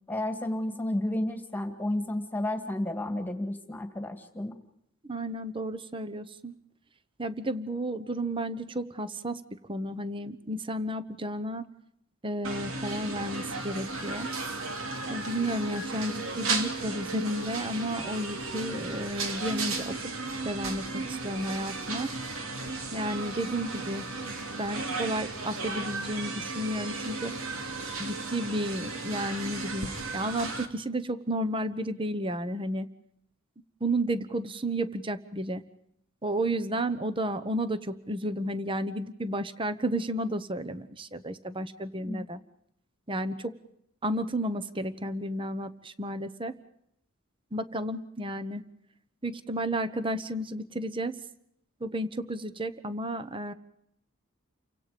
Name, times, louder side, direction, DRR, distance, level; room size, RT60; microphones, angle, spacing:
voice 1, 0.1-4.6 42.1-42.2, left 1 dB, 10° left, 6 dB, 2.3 m, -32 dB
voice 2, 5.0-6.5 7.2-11.7 12.2-14.3 15.1-19.9 20.4-22.1 22.9-24.1 24.6-27.3 28.0-32.9 33.8-35.6 36.2-42.4 43.1-43.6 44.0-46.6 47.5-48.6 49.2-51.2 51.8-53.5, right 1 dB, 25° right, 13 dB, 1.1 m, -32 dB
sound 1, 12.4-30.7, right 3 dB, 70° right, 3.0 m, -35 dB
30.0 x 25.0 x 5.2 m, 0.75 s
head